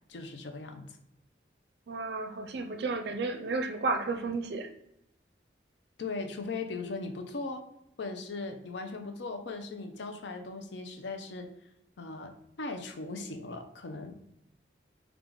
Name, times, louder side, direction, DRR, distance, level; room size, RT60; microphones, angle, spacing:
voice 1, 0.1-1.0 6.0-7.6 8.0-11.5 12.0-12.3 12.6-14.3, left 3 dB, 80° left, 6 dB, 0.6 m, -38 dB
voice 2, 1.9-4.7, right 3 dB, 65° right, 7 dB, 0.4 m, -32 dB
4.5 x 2.4 x 3.8 m, 0.80 s
head